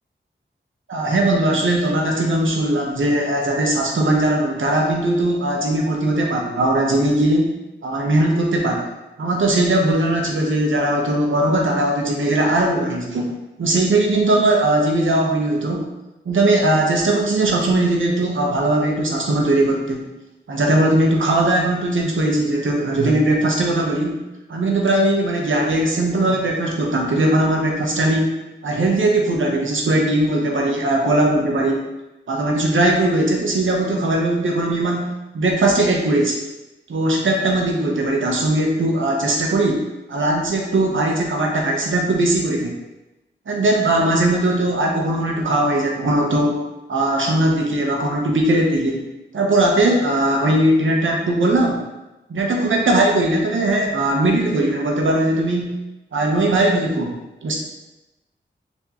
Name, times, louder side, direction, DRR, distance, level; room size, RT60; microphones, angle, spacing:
voice 1, 0.9-8.9 9.2-13.3 13.6-15.9 16.3-20.0 20.5-24.2 24.5-28.4 28.6-31.8 32.3-36.4 36.9-42.8 43.5-46.6 46.9-49.1 49.3-51.9 52.3-55.7 56.1-57.5, right 1 dB, 85° right, 0 dB, 0.8 m, -19 dB
4.2 x 3.5 x 2.9 m, 1.0 s
wide cardioid pair, 65°, 20 cm